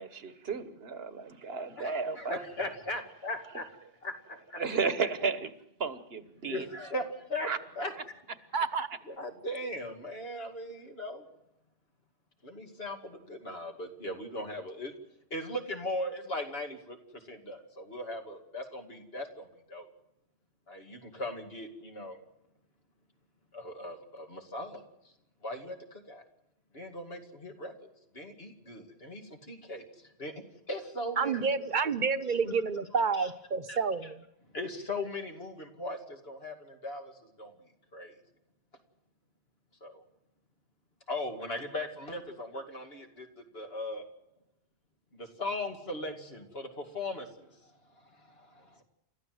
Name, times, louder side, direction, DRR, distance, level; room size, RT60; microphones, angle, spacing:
voice 1, 0.0-2.4 4.6-5.5 5.8-6.6 7.4-7.6, right 5 dB, 70° right, 13 dB, 1.5 m, -33 dB
voice 2, 1.8-3.7 4.0-4.6 6.4-8.2 9.1-11.2 12.4-15.0 15.3-17.0 17.2-19.9 20.7-22.2 23.5-24.8 25.4-26.2 26.7-27.9 28.1-30.3 30.7-31.5 33.1-33.3 33.7-33.8 34.0-34.1 34.5-37.5 37.9-38.1 39.8-40.0 41.1-44.0 45.1-47.7 48.0-48.8, left 1 dB, 70° left, 5 dB, 2.7 m, -39 dB
voice 3, 8.5-8.9 31.2-34.2, right 5 dB, 50° right, 11 dB, 1.1 m, -29 dB
30.0 x 14.0 x 7.9 m, 0.85 s
omnidirectional pair, 1.1 m